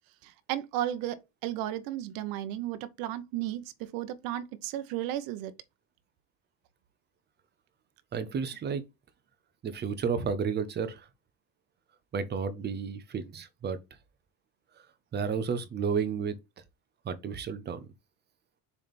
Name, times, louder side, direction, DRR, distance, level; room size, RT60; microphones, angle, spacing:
voice 1, 0.2-5.5, right 13 dB, 65° right, 0.9 m, -34 dB
voice 2, 8.1-8.8 9.6-11.1 12.1-13.8 15.1-16.4 17.0-17.9, right 6 dB, 25° right, 0.8 m, -32 dB
7.2 x 3.4 x 4.2 m
cardioid pair, 145°, 37 cm